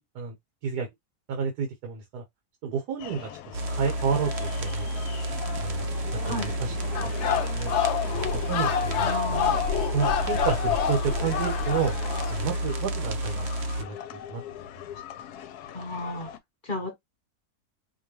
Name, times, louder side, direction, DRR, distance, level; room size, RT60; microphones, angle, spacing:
voice 1, 1.3-2.2 2.6-4.9 5.6-5.9 6.2-7.7 8.1-9.4 9.9-11.9 12.3-13.5 13.8-14.4, right 6 dB, 80° right, 1.6 m, -31 dB
sound 1, 3.0-16.4, left 10 dB, 80° left, 1.1 m, -41 dB
sound 2, 3.5-13.8, right 1 dB, 55° right, 0.8 m, -31 dB
sound 3, 6.9-12.5, left 9 dB, 60° left, 0.7 m, -28 dB
voice 2, 9.0-9.6 15.7-16.3 16.6-16.9, left 1 dB, 35° left, 1.3 m, -33 dB
5.0 x 2.2 x 3.1 m
omnidirectional pair, 1.7 m